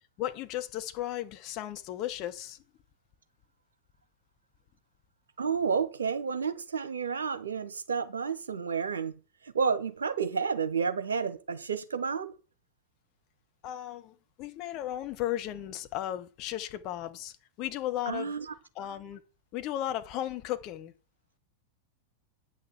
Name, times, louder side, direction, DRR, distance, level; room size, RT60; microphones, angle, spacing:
voice 1, 0.2-2.6 13.6-18.3 18.7-19.2 19.5-20.9, left 13 dB, 40° left, 1.4 m, -35 dB
voice 2, 5.4-9.2 9.4-12.3 18.1-18.5, right 6 dB, 70° right, 1.2 m, -31 dB
8.8 x 6.5 x 7.4 m
figure-of-eight pair, 90°, 0 cm